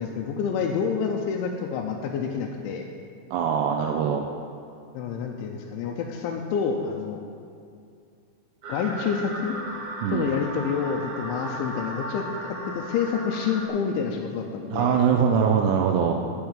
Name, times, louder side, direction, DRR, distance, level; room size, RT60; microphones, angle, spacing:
voice 1, 0.0-2.9 4.9-7.2 8.7-9.6 10.1-15.0, left 6 dB, 80° left, 0 dB, 2.9 m, -28 dB
voice 2, 3.3-4.3 10.0-10.3 14.7-16.1, right 7 dB, 85° right, 2 dB, 2.4 m, -22 dB
sound 1, 8.6-13.7, right 1 dB, 60° right, 2.3 m, -35 dB
13.5 x 4.9 x 8.9 m, 2.4 s
omnidirectional pair, 5.6 m